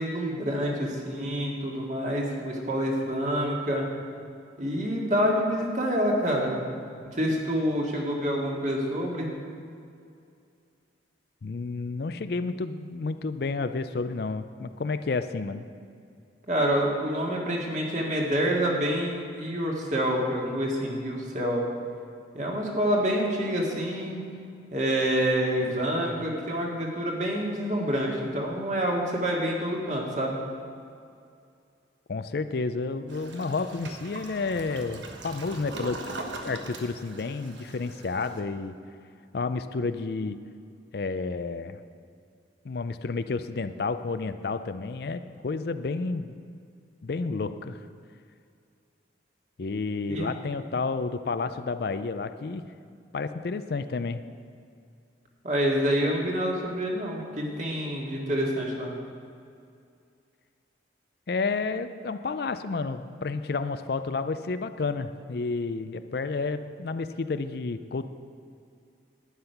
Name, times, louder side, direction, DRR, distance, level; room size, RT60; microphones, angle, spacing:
voice 1, 0.0-3.8 4.6-6.6 7.0-9.3 16.5-21.7 22.3-24.2 24.7-30.4 50.1-50.3 55.4-58.9, equal, 40° right, -1 dB, 2.0 m, -27 dB
voice 2, 11.4-15.7 32.1-36.0 36.4-38.8 39.3-40.4 40.9-41.8 42.6-46.4 47.0-47.8 49.6-52.6 53.1-54.2 61.3-68.1, left 4 dB, 55° left, 11 dB, 0.4 m, -31 dB
Toilet flush, 33.1-38.4, right 2 dB, 75° right, 1.3 m, -41 dB
11.5 x 9.6 x 5.8 m, 2.4 s
head